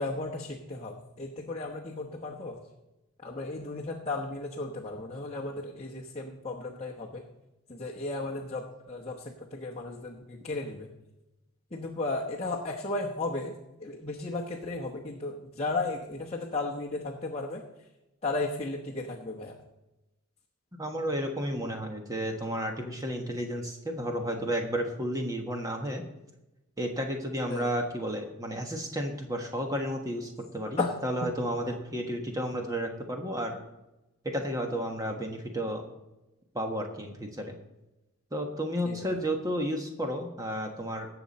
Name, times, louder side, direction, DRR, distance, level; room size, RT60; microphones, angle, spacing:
voice 1, 0.0-2.6 3.2-7.3 7.7-10.9 11.7-13.5 13.8-17.6 18.2-19.5 27.5-27.7 30.8-30.9 31.2-31.3 38.8-39.1, left 2 dB, 25° left, -2 dB, 1.0 m, -34 dB
voice 2, 20.7-26.0 26.8-33.6 34.2-35.8 36.5-37.5 38.3-41.1, equal, 15° right, 3 dB, 1.3 m, -32 dB
18.0 x 6.9 x 4.2 m, 0.97 s
head